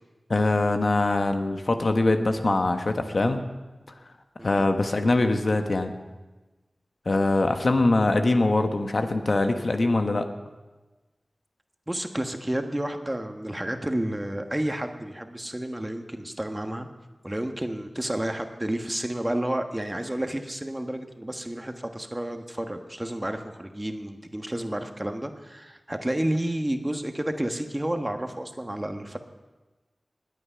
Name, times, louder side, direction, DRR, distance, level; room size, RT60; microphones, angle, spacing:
voice 1, 0.3-3.4 4.4-5.9 7.1-10.3, left 2 dB, 65° left, 6 dB, 1.1 m, -23 dB
voice 2, 11.9-16.9 17.2-29.2, right 1 dB, 20° right, 6 dB, 1.3 m, -31 dB
20.0 x 8.6 x 5.7 m, 1.2 s
wide cardioid pair, 50°, 0 cm